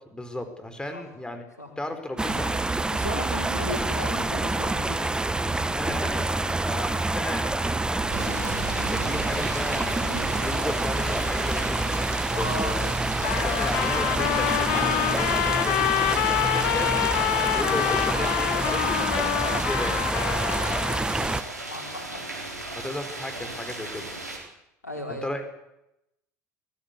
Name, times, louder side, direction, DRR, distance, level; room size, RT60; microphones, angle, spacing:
voice 1, 0.1-1.4 1.8-2.5 5.7-11.9 12.3-12.8 13.1-19.3 19.6-20.3 21.1-21.4 22.8-24.0 25.2-25.4, left 1 dB, 10° left, 8 dB, 4.7 m, -35 dB
sound 1, 2.2-21.4, right 2 dB, 10° right, 1.5 m, -27 dB
voice 2, 2.9-5.1 12.3-12.8 20.9-22.3 24.8-25.3, left 1 dB, 85° left, 1 dB, 5.2 m, -36 dB
sound 2, 8.1-24.4, right 2 dB, 85° right, 4.1 m, -37 dB
Trumpet, 13.2-21.0, left 16 dB, 60° left, 1.0 m, -26 dB
23.5 x 17.5 x 8.4 m, 0.88 s
figure-of-eight pair, 70°, 9 cm